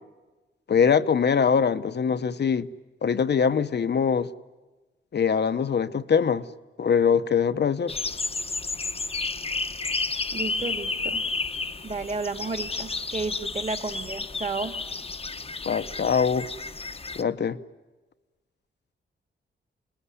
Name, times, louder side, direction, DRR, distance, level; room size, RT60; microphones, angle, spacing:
voice 1, 0.7-2.7 3.0-4.3 5.1-6.5 6.8-8.0 15.7-16.5 17.1-17.6, left 6 dB, 55° left, 0.9 m, -23 dB
sound 1, 7.9-17.2, left 3 dB, 30° left, 0.9 m, -31 dB
voice 2, 10.3-11.2 11.8-14.7, right 4 dB, 40° right, 2.0 m, -32 dB
27.5 x 20.0 x 9.9 m
cardioid pair, 90°, 20 cm